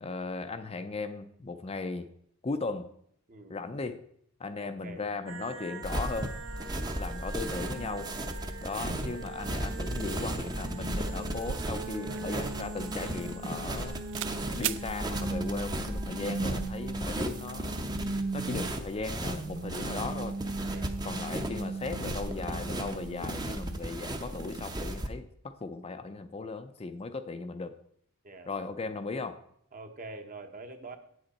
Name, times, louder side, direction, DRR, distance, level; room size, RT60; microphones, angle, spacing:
voice 1, 0.0-2.1 2.4-2.9 3.5-4.0 4.4-6.4 7.0-8.1 8.6-14.0 14.5-17.8 18.3-20.3 21.0-27.7 28.5-29.4, left 3 dB, 30° left, 9 dB, 0.5 m, -37 dB
voice 2, 3.3-3.6 4.6-5.0 19.9-20.2 20.7-20.9 28.2-28.5 29.7-31.0, right 3 dB, 40° right, 6 dB, 1.0 m, -45 dB
sound 1, 5.3-23.8, right 2 dB, 80° right, 1.2 m, -39 dB
sound 2, 5.8-25.1, right 1 dB, 20° right, 0.7 m, -36 dB
sound 3, 11.5-13.8 14.1-14.3 14.6-14.8, right 12 dB, 60° right, 0.3 m, -38 dB
9.3 x 7.8 x 4.2 m, 0.69 s
head